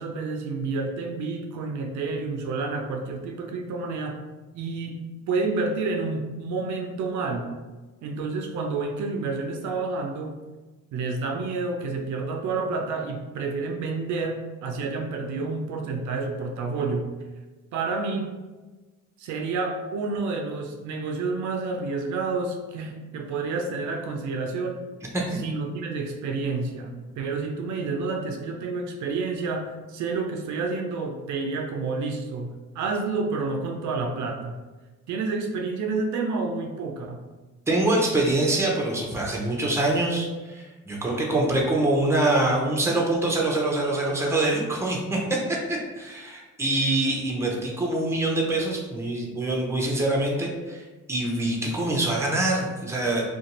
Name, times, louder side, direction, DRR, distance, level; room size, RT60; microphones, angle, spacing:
voice 1, 0.0-4.2 4.5-5.0 5.3-7.6 8.0-10.4 10.9-17.1 17.7-18.3 19.2-24.8 25.3-34.6 35.1-37.2, right 3 dB, 75° right, 3 dB, 0.4 m, -29 dB
voice 2, 37.7-50.8 51.1-53.2, right 2 dB, 10° right, -2 dB, 0.6 m, -25 dB
2.5 x 2.2 x 2.9 m, 1.2 s
cardioid pair, 90°, 30 cm